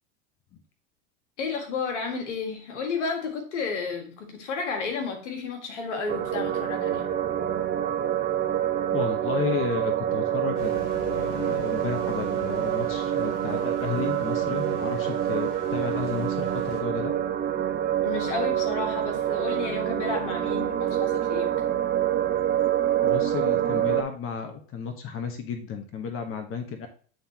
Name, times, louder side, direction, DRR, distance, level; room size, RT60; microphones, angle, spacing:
voice 1, 1.4-7.1 18.0-21.6, left 4 dB, 85° left, 1.8 m, -32 dB
sound 1, 6.1-24.0, right 10 dB, 30° right, 0.8 m, -26 dB
voice 2, 8.9-17.1 23.0-26.9, left 6 dB, 40° left, 1.2 m, -33 dB
sound 2, 10.5-16.8, left 4 dB, 65° left, 3.2 m, -46 dB
9.3 x 3.8 x 2.9 m
hypercardioid pair, 95°, 35 cm